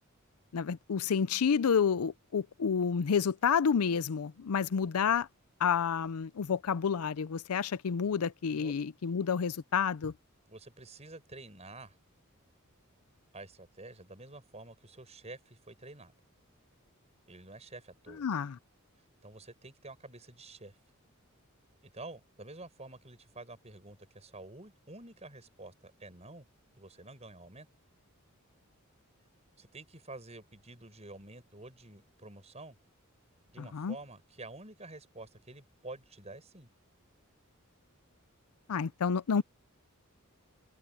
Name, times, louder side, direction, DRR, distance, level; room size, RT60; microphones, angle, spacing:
voice 1, 0.5-5.3 5.6-10.1 18.2-18.6 33.6-34.0 38.7-39.4, left 6 dB, 85° left, 0.5 m, -29 dB
voice 2, 10.5-12.0 13.3-16.1 17.3-18.3 19.2-20.7 21.8-26.5 26.8-27.7 29.6-32.8 33.5-36.7, right 2 dB, 30° right, 6.7 m, -49 dB
head